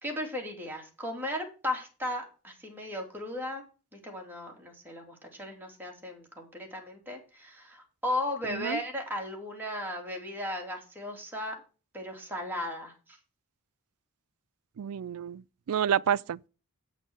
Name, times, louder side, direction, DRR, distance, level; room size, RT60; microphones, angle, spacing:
voice 1, 0.0-3.6 3.9-11.6 11.9-13.2, left 1 dB, 10° right, 2.8 m, -36 dB
voice 2, 8.5-8.8 14.8-15.4 15.7-16.5, right 8 dB, 70° right, 0.4 m, -29 dB
8.2 x 6.5 x 6.2 m
head